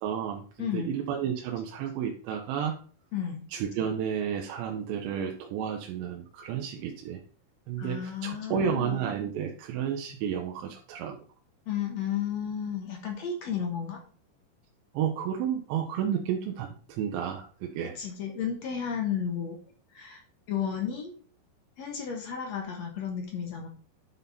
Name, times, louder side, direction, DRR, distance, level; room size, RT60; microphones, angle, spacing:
voice 1, 0.0-2.8 3.5-7.2 7.7-11.2 14.9-17.9, right 8 dB, 90° right, 2 dB, 3.2 m, -31 dB
voice 2, 0.6-1.0 3.1-3.4 7.8-9.1 11.7-14.0 18.0-19.6 19.9-20.2 20.5-21.1 21.8-23.7, left 8 dB, 60° left, 2 dB, 1.8 m, -33 dB
11.5 x 5.4 x 4.2 m, 0.41 s
omnidirectional pair, 5.0 m